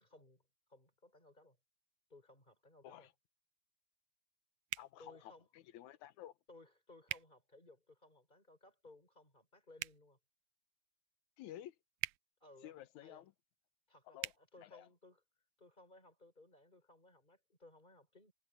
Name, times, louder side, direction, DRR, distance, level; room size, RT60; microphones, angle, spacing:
voice 1, 0.0-1.6 2.1-3.1 5.0-5.5 6.5-10.2 12.4-12.7 13.0-13.3 13.9-15.2 15.6-18.3, left 2 dB, 15° left, 5.1 m, -61 dB
sound 1, 4.7-4.9 7.1-7.3 9.7-10.0 12.0-12.2 14.2-14.4, right 18 dB, 80° right, 1.7 m, -41 dB
voice 2, 4.8-6.4 11.4-11.8 12.6-13.3 14.1-14.3 14.6-14.9, left 12 dB, 80° left, 2.3 m, -53 dB
omnidirectional pair, 3.3 m